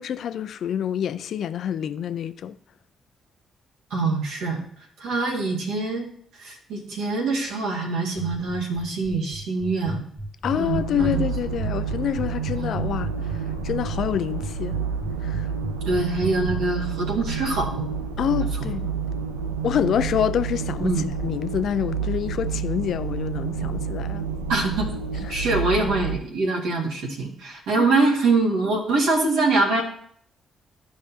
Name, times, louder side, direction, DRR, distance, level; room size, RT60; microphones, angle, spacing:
voice 1, 0.0-2.6 10.4-14.8 15.2-15.5 18.2-18.9 19.6-20.9 21.2-24.3 25.2-25.4 27.8-28.0, left 9 dB, 65° left, 0.5 m, -27 dB
voice 2, 3.9-4.6 5.0-6.1 6.4-10.1 10.6-11.3 12.6-12.8 15.9-17.9 20.8-21.1 24.5-24.9 25.1-29.8, right 3 dB, 75° right, 2.0 m, -24 dB
sound 1, 8.2-16.6, right 1 dB, 20° right, 1.2 m, -33 dB
sound 2, 10.5-26.2, right 6 dB, 90° right, 0.5 m, -29 dB
13.0 x 5.1 x 2.8 m
hypercardioid pair, 40°, 0 cm